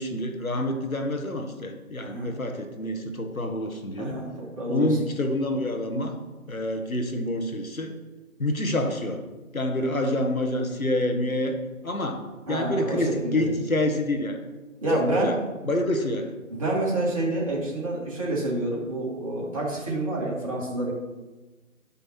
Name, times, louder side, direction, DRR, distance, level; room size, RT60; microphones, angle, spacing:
voice 1, 0.0-4.2 4.7-6.1 6.5-7.9 8.4-9.2 9.5-11.6 11.8-14.4 14.9-15.3 15.7-16.3, left 1 dB, 70° left, 4 dB, 1.6 m, -27 dB
voice 2, 4.0-5.0 9.8-9.9 12.5-13.5 14.8-15.3 16.5-20.9, right 2 dB, 25° right, -4 dB, 1.9 m, -28 dB
11.0 x 5.6 x 4.5 m, 1.2 s
figure-of-eight pair, 155°, 43 cm